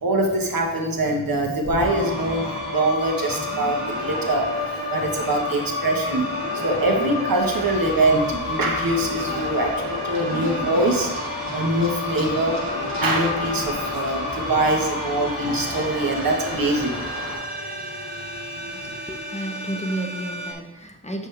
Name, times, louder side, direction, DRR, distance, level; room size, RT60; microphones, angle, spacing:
voice 1, 0.0-17.0 17.6-17.8 18.7-18.9, right 2 dB, 80° right, 1 dB, 1.3 m, -24 dB
sound 1, 1.6-20.5, left 2 dB, 65° right, 2.1 m, -30 dB
Run, 7.4-17.3, left 1 dB, 55° left, 2.7 m, -37 dB
voice 2, 18.7-21.3, right 1 dB, 20° left, 3 dB, 1.0 m, -32 dB
8.2 x 6.2 x 3.3 m, 0.98 s
wide cardioid pair, 80°, 34 cm